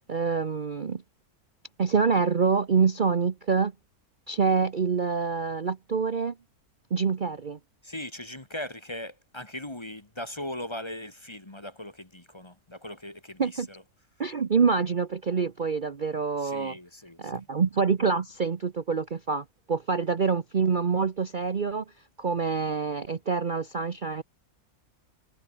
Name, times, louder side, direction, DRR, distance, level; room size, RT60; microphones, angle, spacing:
voice 1, 0.1-1.0 1.8-3.7 4.3-6.3 6.9-7.6 13.4-13.7 14.2-16.8 17.2-21.8 22.2-24.2, right 5 dB, 40° right, 0.9 m, -26 dB
voice 2, 7.8-13.8 16.4-17.5, left 1 dB, 20° left, 1.5 m, -39 dB
omnidirectional pair, 1.6 m